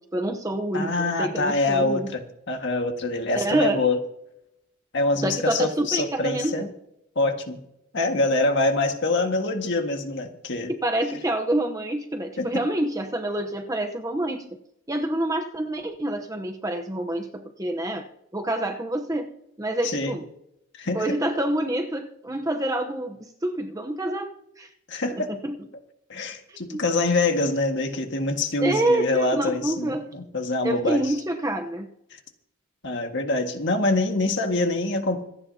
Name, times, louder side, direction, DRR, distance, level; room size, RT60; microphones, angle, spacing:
voice 1, 0.0-2.1 3.3-3.8 5.2-6.7 10.7-14.5 14.9-18.1 18.3-19.3 19.6-20.2 20.9-24.7 25.1-25.6 26.5-26.8 28.6-30.2 30.6-31.9, right 1 dB, 15° right, 4 dB, 0.9 m, -27 dB
voice 2, 0.7-4.0 4.9-6.7 7.2-7.6 7.9-10.7 12.4-12.6 19.8-20.2 20.7-21.0 24.9-25.3 26.1-31.0 32.8-35.2, left 2 dB, 50° left, 4 dB, 1.8 m, -25 dB
26.5 x 9.5 x 2.8 m, 0.82 s
head